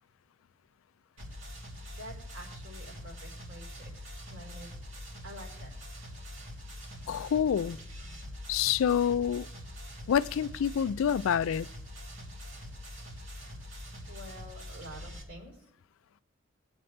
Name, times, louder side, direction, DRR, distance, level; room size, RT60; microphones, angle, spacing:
sound 1, 1.2-15.2, equal, 70° right, 3.1 m, -44 dB
voice 1, 1.9-4.7 5.2-5.7 14.1-15.7, equal, 85° right, 4.2 m, -48 dB
voice 2, 7.1-7.8 8.5-9.5 10.1-11.7, left 8 dB, 85° left, 0.3 m, -27 dB
19.0 x 8.0 x 3.3 m
head